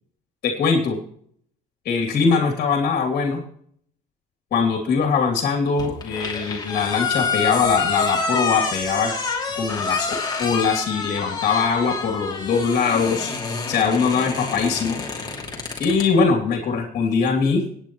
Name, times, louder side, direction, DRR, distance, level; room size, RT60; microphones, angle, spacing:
voice 1, 0.4-1.0 1.8-3.4 4.5-9.1 9.5-13.3 13.7-15.0 15.8-17.7, left 5 dB, 60° left, 2 dB, 2.8 m, -21 dB
sound 1, 5.8-16.1, left 4 dB, 25° left, 2.8 m, -27 dB
25.0 x 9.4 x 3.1 m, 0.64 s
cardioid pair, 110°, 17 cm